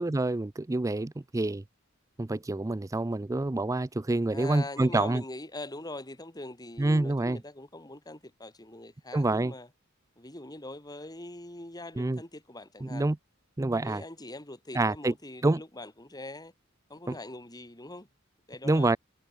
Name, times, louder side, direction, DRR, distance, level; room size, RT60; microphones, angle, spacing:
voice 1, 0.0-1.6 2.2-5.2 6.8-7.4 9.1-9.5 12.0-12.2 12.8-13.2 13.6-14.0 14.7-15.1 15.4-15.6 17.1-17.2 18.6-19.0, right 2 dB, 15° right, 0.4 m, -27 dB
voice 2, 4.3-9.7 10.2-13.1 13.7-16.5 16.9-18.1 18.5-18.9, left 2 dB, 20° left, 3.6 m, -42 dB
head